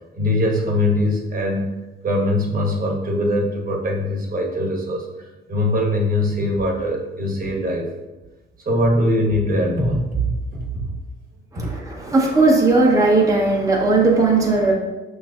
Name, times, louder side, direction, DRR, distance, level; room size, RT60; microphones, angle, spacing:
voice 1, 0.1-1.7 2.0-7.9 8.6-10.6 11.5-11.7, left 1 dB, 45° right, 0 dB, 1.1 m, -22 dB
voice 2, 11.5-14.7, right 3 dB, 15° right, -2 dB, 0.9 m, -17 dB
5.9 x 3.1 x 2.4 m, 1.1 s
cardioid pair, 90°, 20 cm